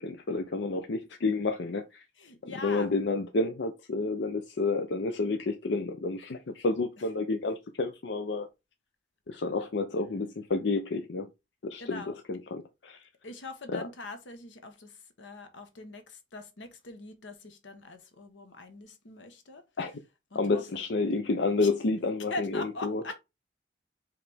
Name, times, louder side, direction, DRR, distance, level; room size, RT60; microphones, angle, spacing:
voice 1, 0.0-2.0 2.6-8.5 9.3-11.3 11.6-13.1 13.7-13.8 19.8-19.9 20.3-22.5 22.8-23.0, left 3 dB, 65° left, 0.6 m, -30 dB
voice 2, 2.2-2.9 11.8-12.1 13.2-19.6 20.3-20.6 21.6-21.7 22.3-23.1, left 2 dB, 85° left, 1.1 m, -42 dB
4.8 x 3.3 x 3.4 m
head